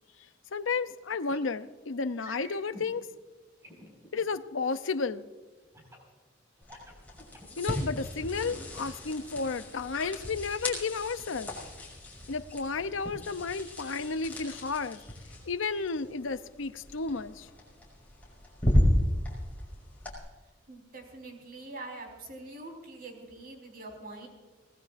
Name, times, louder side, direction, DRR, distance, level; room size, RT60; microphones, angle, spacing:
voice 1, 0.5-3.1 4.1-5.3 7.6-11.5 12.3-15.0 15.5-17.5, left 4 dB, 90° left, 12 dB, 0.7 m, -32 dB
sound 1, 1.3-1.5 2.2-2.9 3.6-4.2 5.7-6.1 6.6-7.7 8.2-8.6, equal, 15° right, 5.3 m, -49 dB
sound 2, 6.6-20.2, left 1 dB, 10° left, 5.6 m, -34 dB
voice 2, 20.7-24.3, right 2 dB, 50° right, 1 dB, 4.4 m, -44 dB
24.5 x 19.0 x 2.6 m, 1.3 s
head